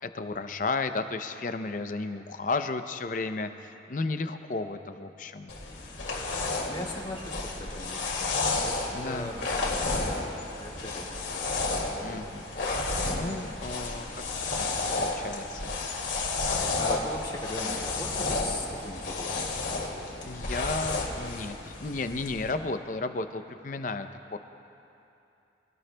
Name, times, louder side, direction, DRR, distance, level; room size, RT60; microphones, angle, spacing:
voice 1, 0.0-5.5 8.9-9.4 12.0-12.4 12.8-14.2 14.6-15.8 20.2-24.4, left 3 dB, 45° left, 9 dB, 0.6 m, -33 dB
sound 1, 5.5-22.5, left 3 dB, 85° left, 2.3 m, -32 dB
voice 2, 6.6-8.3 8.6-9.6 10.6-11.2 11.9-12.3 16.7-19.5, left 1 dB, 25° left, -3 dB, 1.7 m, -39 dB
24.5 x 18.0 x 2.2 m, 2.8 s
head